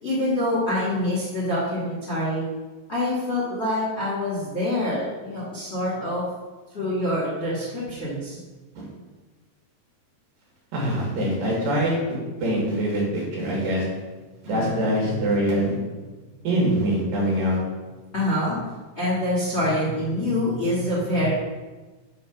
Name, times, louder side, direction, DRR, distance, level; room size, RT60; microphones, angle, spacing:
voice 1, 0.0-2.5 2.9-6.2 6.7-8.4 14.5-15.1 15.9-16.0 18.1-18.6 19.0-21.3, left 1 dB, 25° left, -7 dB, 1.7 m, -26 dB
voice 2, 10.7-12.0 12.4-13.9 14.4-15.8 16.4-17.6, right 1 dB, 70° right, -3 dB, 3.8 m, -24 dB
9.1 x 3.8 x 6.1 m, 1.2 s
omnidirectional pair, 4.1 m